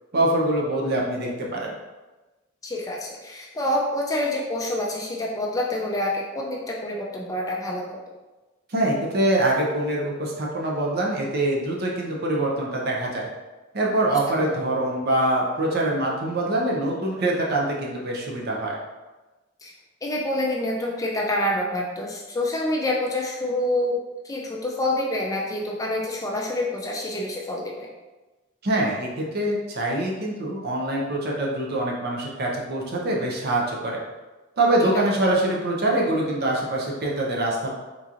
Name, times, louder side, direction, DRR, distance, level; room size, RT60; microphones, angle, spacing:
voice 1, 0.1-1.8 8.7-13.3 13.7-18.8 28.6-34.0 34.6-37.7, right 1 dB, 50° right, -2 dB, 0.6 m, -24 dB
voice 2, 2.6-8.0 14.1-14.6 19.6-19.7 20.0-24.0 24.2-27.9, left 1 dB, 15° left, -2 dB, 0.3 m, -27 dB
3.8 x 2.9 x 2.4 m, 1.2 s
head